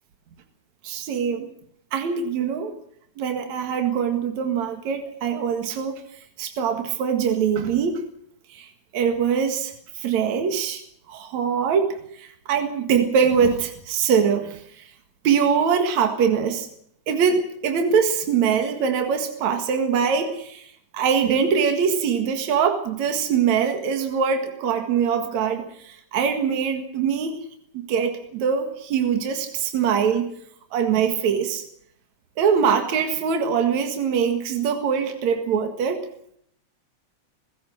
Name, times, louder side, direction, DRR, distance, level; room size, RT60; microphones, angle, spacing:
voice 1, 0.8-1.5 1.9-2.7 3.2-6.0 6.4-8.0 8.5-10.8 11.1-11.9 12.2-14.9 15.2-16.7 17.1-20.7 20.9-27.4 27.7-30.3 30.7-31.6 32.4-36.0, right 7 dB, 65° right, 5 dB, 3.1 m, -23 dB
28.0 x 16.0 x 6.4 m, 0.70 s
omnidirectional pair, 3.5 m